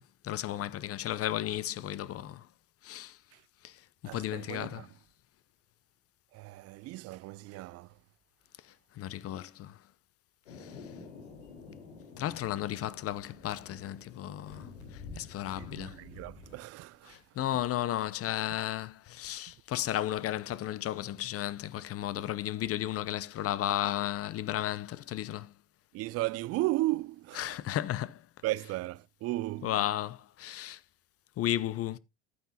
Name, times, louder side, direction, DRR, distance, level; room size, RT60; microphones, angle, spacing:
voice 1, 0.0-2.4 2.8-3.2 3.6-3.7 4.1-4.8 9.0-9.7 10.6-10.7 12.2-14.7 15.2-16.0 17.1-25.5 27.4-28.2 29.6-30.8 31.4-32.0, left 13 dB, 45° left, 0.7 m, -34 dB
voice 2, 4.1-5.0 6.3-8.0 15.6-17.2 25.9-27.6 28.4-29.8, right 18 dB, 50° right, 0.4 m, -35 dB
Thunder, 10.5-16.6, left 4 dB, 85° left, 3.9 m, -49 dB
11.0 x 9.1 x 2.8 m
hypercardioid pair, 65°, 32 cm